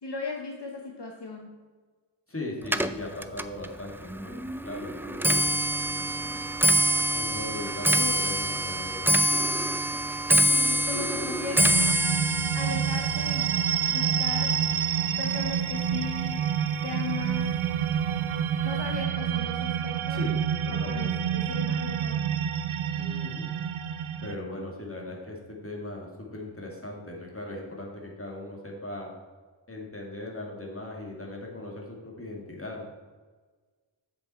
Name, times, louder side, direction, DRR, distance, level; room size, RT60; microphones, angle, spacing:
voice 1, 0.0-1.5 7.9-8.1 10.5-11.7 12.5-13.5 13.9-14.5 15.2-16.4 16.8-17.4 18.6-20.2 20.7-22.2, left 3 dB, 55° left, 1 dB, 1.1 m, -37 dB
voice 2, 2.3-4.3 4.6-5.6 7.1-9.0 20.1-20.3 20.6-21.1 23.0-23.5 24.2-29.1 29.7-32.8, left 1 dB, 25° left, -1 dB, 2.3 m, -39 dB
Clock, 2.6-16.0 16.3-16.8 17.6-17.7 18.0-18.4 18.6-18.7, equal, 5° right, 0.4 m, -26 dB
sound 1, 11.6-24.4, right 9 dB, 80° right, 0.6 m, -28 dB
7.6 x 7.3 x 4.4 m, 1.4 s
wide cardioid pair, 65°, 48 cm